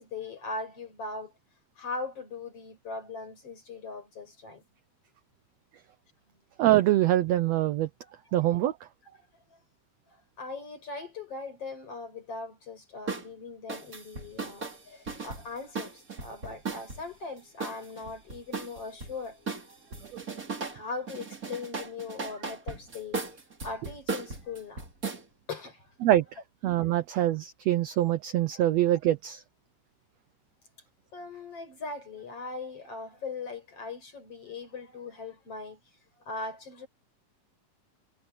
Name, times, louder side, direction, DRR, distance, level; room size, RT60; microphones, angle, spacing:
voice 1, 0.0-1.3 1.8-4.6 8.0-8.4 9.5-9.6 10.1-20.0 20.7-24.9 25.5-25.9 26.7-26.8 28.5-28.7 31.1-35.8 36.2-36.9, left 3 dB, 40° left, 6.7 m, -40 dB
voice 2, 6.6-7.9 8.3-8.8 20.1-20.2 26.0-26.2 26.6-29.4, right 14 dB, 85° right, 1.5 m, -24 dB
sound 1, 13.1-13.3 13.7-17.0 17.6-19.1 19.5-20.8 21.1-25.2, right 4 dB, 25° right, 3.0 m, -37 dB
omnidirectional pair, 3.9 m